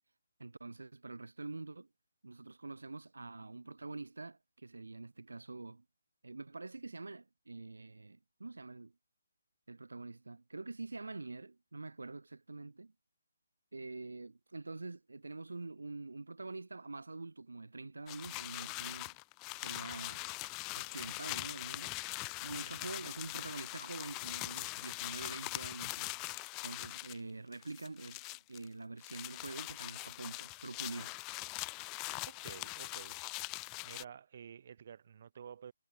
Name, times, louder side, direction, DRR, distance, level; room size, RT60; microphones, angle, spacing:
voice 1, 0.4-1.9 2.2-5.8 6.2-8.9 9.7-12.9 13.7-19.1 19.5-20.3 20.8-21.9 22.4-26.2 26.6-31.1, right 3 dB, 85° right, 0.5 m, -46 dB
sound 1, 18.1-27.2 27.5-28.7 29.0-34.0, left 29 dB, 20° left, 0.4 m, -42 dB
voice 2, 22.5-23.1 32.2-33.2 33.8-35.7, right 8 dB, 50° right, 0.8 m, -51 dB
figure-of-eight pair, 150°, 0 cm